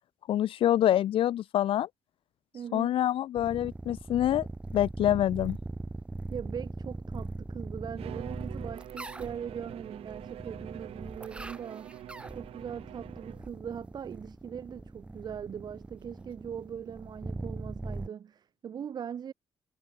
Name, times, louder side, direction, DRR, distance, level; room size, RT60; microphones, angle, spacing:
voice 1, 0.3-1.9 2.7-4.5 4.7-5.6, left 12 dB, 65° left, 0.8 m, -26 dB
voice 2, 2.5-3.0 6.3-12.0 12.3-19.3, right 8 dB, 45° right, 4.8 m, -40 dB
sound 1, 3.4-18.1, right 2 dB, 10° right, 1.0 m, -41 dB
Bowed string instrument, 8.0-13.6, right 12 dB, 85° right, 4.3 m, -46 dB
cardioid pair, 175°, 10 cm